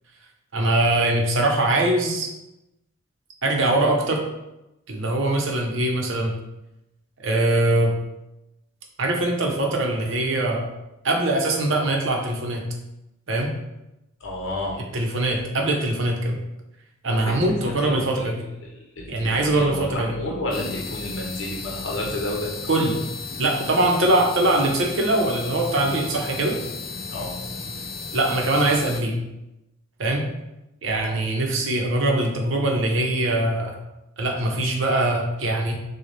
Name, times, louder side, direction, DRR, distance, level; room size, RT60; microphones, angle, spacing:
voice 1, 0.5-2.3 3.4-4.2 4.9-6.4 7.2-8.0 9.0-10.7 11.0-12.6 13.3-13.5 14.9-16.4 17.0-18.4 19.1-20.1 22.7-23.0 23.4-26.6 28.1-29.2 30.0-30.2 30.8-33.8 34.2-35.7, right 1 dB, 65° right, 1 dB, 0.9 m, -22 dB
voice 2, 14.2-14.8 17.1-18.3 18.6-22.5 27.1-27.4 30.8-31.3, left 1 dB, 65° left, -2 dB, 0.9 m, -31 dB
sound 1, 20.5-29.0, left 4 dB, 45° left, 0.5 m, -34 dB
6.5 x 2.3 x 3.3 m, 0.92 s
head